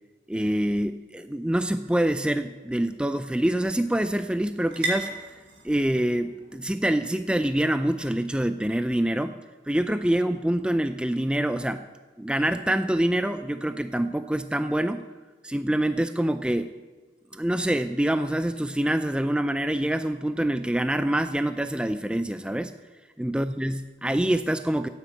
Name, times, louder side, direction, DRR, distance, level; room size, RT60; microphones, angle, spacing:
voice 1, 0.3-5.1 5.6-9.3 9.7-11.8 12.2-15.0 15.4-16.7 17.3-22.7 23.2-24.9, right 1 dB, 5° right, 10 dB, 0.4 m, -25 dB
sound 1, 1.3-9.1, right 2 dB, 75° right, 3.5 m, -40 dB
14.0 x 8.8 x 9.0 m, 1.3 s
head